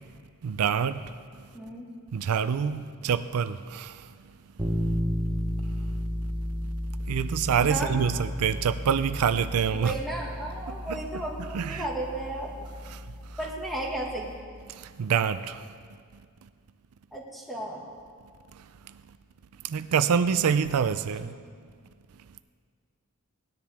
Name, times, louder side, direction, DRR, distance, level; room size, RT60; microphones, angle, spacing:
voice 1, 0.4-1.5 2.1-4.2 5.6-5.9 7.0-10.0 10.7-11.2 11.5-11.9 12.9-13.4 14.7-15.7 16.4-16.5 18.5-19.0 19.6-21.3, right 7 dB, 90° right, 0.4 m, -27 dB
voice 2, 1.5-1.9 7.6-7.9 9.7-12.5 13.4-14.3 17.1-17.8 21.2-21.3, right 2 dB, ahead, 1.8 m, -34 dB
sound 1, 4.6-14.4, equal, 20° right, 1.1 m, -33 dB
18.0 x 10.0 x 3.5 m
head